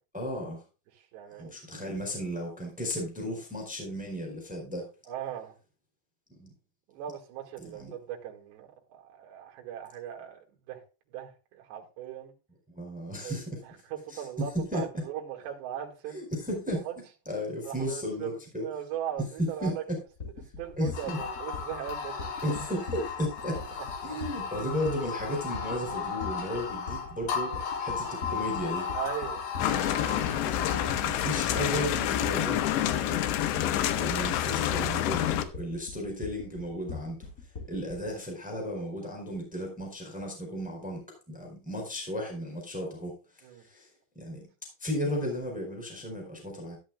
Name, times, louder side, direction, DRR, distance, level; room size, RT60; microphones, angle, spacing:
voice 1, 0.1-0.6 1.4-4.9 6.3-6.5 7.6-7.9 12.7-13.6 14.1-14.2 14.5-14.8 16.1-16.9 17.3-18.7 19.4-20.0 20.8-21.2 22.4-23.6 24.0-28.9 31.0-33.3 34.0-37.3 37.7-43.2 43.6-43.9 44.1-44.5 44.8-46.8, equal, ahead, 3.6 m, -34 dB
voice 2, 0.9-1.8 5.1-5.5 6.9-10.8 11.1-12.3 13.2-16.2 16.8-17.0 17.6-19.8 20.6-22.4 23.5-23.9 28.9-29.4 33.7-34.3 43.4-43.7, right 10 dB, 70° right, 4.0 m, -39 dB
sound 1, 20.2-38.1, left 4 dB, 20° left, 2.7 m, -41 dB
sound 2, 20.9-31.1, left 6 dB, 55° left, 2.6 m, -35 dB
sound 3, 29.6-35.4, left 12 dB, 85° left, 3.1 m, -28 dB
13.0 x 11.5 x 2.2 m
omnidirectional pair, 5.3 m